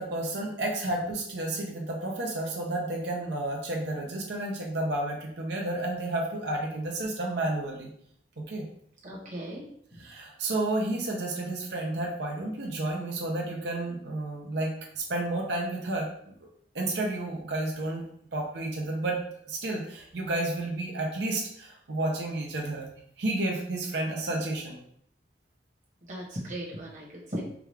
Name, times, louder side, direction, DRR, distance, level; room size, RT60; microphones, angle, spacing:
voice 1, 0.0-7.9 8.4-8.7 10.0-16.3 16.7-18.0 18.3-19.2 19.5-22.9 23.2-24.8, right 2 dB, 70° right, -1 dB, 0.7 m, -31 dB
voice 2, 9.0-9.6 26.0-27.4, equal, 45° right, -3 dB, 1.2 m, -37 dB
4.9 x 2.4 x 3.2 m, 0.68 s
head